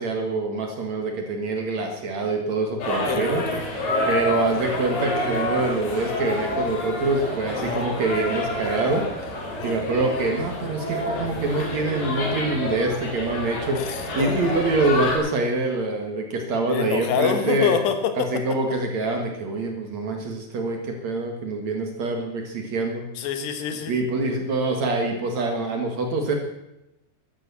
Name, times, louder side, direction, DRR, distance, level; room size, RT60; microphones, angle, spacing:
voice 1, 0.0-3.4 3.8-9.1 9.6-13.8 14.2-17.8 18.2-23.1 23.9-26.3, right 2 dB, 55° right, 3 dB, 2.4 m, -25 dB
sound 1, 2.8-15.2, left 1 dB, 60° left, 5.0 m, -28 dB
voice 2, 3.1-3.6 7.6-7.9 9.6-9.7 13.8-14.4 16.7-18.0 23.2-23.9, left 7 dB, 85° left, 8 dB, 3.6 m, -26 dB
14.0 x 11.5 x 6.9 m, 0.91 s
omnidirectional pair, 4.7 m